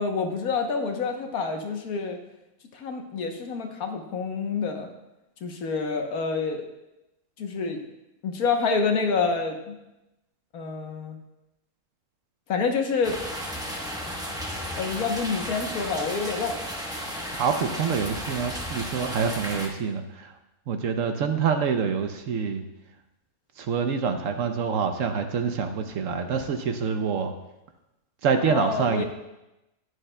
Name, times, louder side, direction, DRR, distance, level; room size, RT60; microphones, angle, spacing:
voice 1, 0.0-2.2 2.7-4.9 5.4-6.6 7.4-7.8 8.2-9.8 10.5-11.2 12.5-13.2 14.8-16.6 28.4-29.0, left 4 dB, 75° left, 4 dB, 1.4 m, -27 dB
sound 1, 13.0-19.7, equal, 5° right, 0.7 m, -34 dB
voice 2, 17.3-20.3 20.7-22.6 23.6-27.3 28.2-29.0, right 6 dB, 65° right, 7 dB, 0.9 m, -26 dB
11.0 x 9.5 x 2.2 m, 0.95 s
omnidirectional pair, 1.6 m